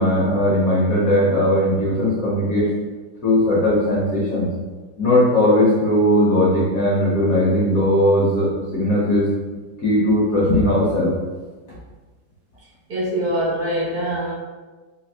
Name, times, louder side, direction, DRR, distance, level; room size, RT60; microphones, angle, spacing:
voice 1, 0.0-2.7 3.2-4.5 5.0-9.3 9.8-11.1, left 1 dB, 55° left, -6 dB, 1.2 m, -18 dB
voice 2, 12.9-14.3, right 1 dB, 60° right, -6 dB, 1.4 m, -23 dB
3.4 x 2.7 x 2.8 m, 1.3 s
omnidirectional pair, 2.0 m